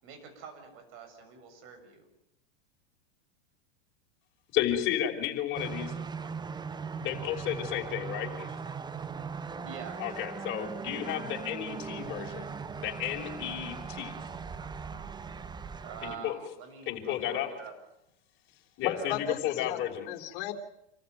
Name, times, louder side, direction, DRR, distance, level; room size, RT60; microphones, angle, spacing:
voice 1, 0.0-2.1 9.6-10.0 15.8-17.7 18.8-19.3, right 6 dB, 50° right, 6 dB, 7.4 m, -45 dB
voice 2, 4.5-5.9 7.0-8.5 10.0-12.5 12.8-14.1 16.0-16.3 16.9-17.5 18.8-20.1, left 12 dB, 40° left, 2 dB, 5.7 m, -32 dB
sound 1, 5.5-16.2, right 5 dB, 15° right, 1.0 m, -39 dB
voice 3, 18.8-19.8 20.1-20.5, left 10 dB, 60° left, 5 dB, 3.7 m, -34 dB
28.0 x 14.5 x 9.5 m, 0.81 s
hypercardioid pair, 115°, 29 cm